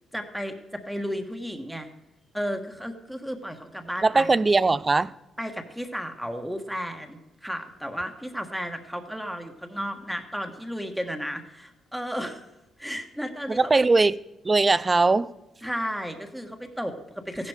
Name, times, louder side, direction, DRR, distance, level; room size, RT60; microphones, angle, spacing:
voice 1, 0.1-1.9 2.3-4.3 5.4-12.5 12.8-13.9 15.6-17.5, equal, ahead, 1.4 m, -33 dB
voice 2, 4.0-5.1 13.5-14.2 14.4-15.3, right 3 dB, 25° right, 0.4 m, -20 dB
15.0 x 11.0 x 5.0 m
cardioid pair, 90°, 0 cm